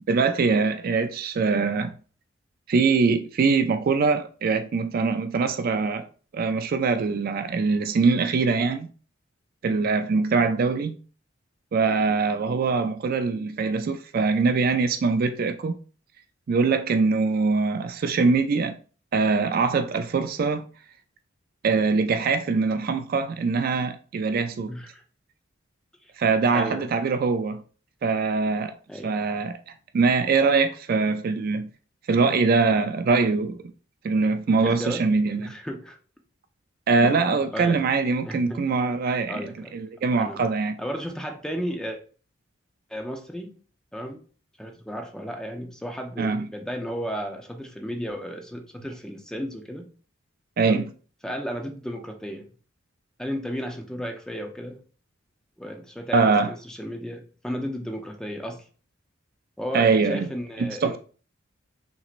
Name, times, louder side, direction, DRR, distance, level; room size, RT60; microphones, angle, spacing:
voice 1, 0.1-1.9 2.7-6.1 6.3-8.9 9.6-10.9 11.7-15.8 16.5-18.8 19.1-20.6 21.6-24.7 26.2-27.6 28.0-28.7 29.0-29.6 29.9-31.7 32.1-33.6 34.0-35.5 36.9-40.8 46.2-46.5 50.6-50.8 56.1-56.5 59.7-60.3 60.6-61.0, right 4 dB, 45° right, 0.3 m, -23 dB
voice 2, 24.7-25.0 26.5-26.9 28.9-29.1 34.6-36.0 37.0-37.8 38.2-38.7 39.3-39.7 40.2-40.4 40.8-42.0 42.9-43.5 43.9-44.2 44.6-49.9 50.6-50.9 51.2-52.4 53.2-54.8 55.6-58.6 59.6-61.0, equal, 5° left, 0.6 m, -34 dB
5.9 x 3.0 x 2.5 m
head